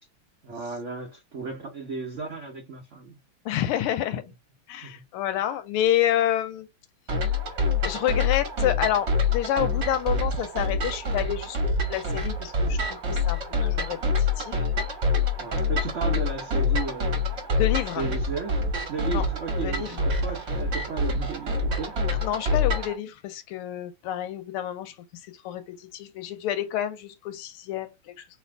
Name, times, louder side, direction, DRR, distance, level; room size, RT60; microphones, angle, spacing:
voice 1, 0.4-3.2 4.1-4.2 4.8-5.0 15.4-17.4 18.0-18.6 18.9-22.0, right 4 dB, 75° right, 0.6 m, -34 dB
voice 2, 3.4-4.2 4.7-6.7 7.8-14.6 17.6-18.0 19.1-19.2 19.6-20.0 22.2-24.9 25.4-28.2, left 11 dB, 90° left, 1.5 m, -29 dB
sound 1, 7.1-23.0, left 3 dB, 40° right, 1.1 m, -26 dB
3.3 x 2.8 x 3.3 m
omnidirectional pair, 2.4 m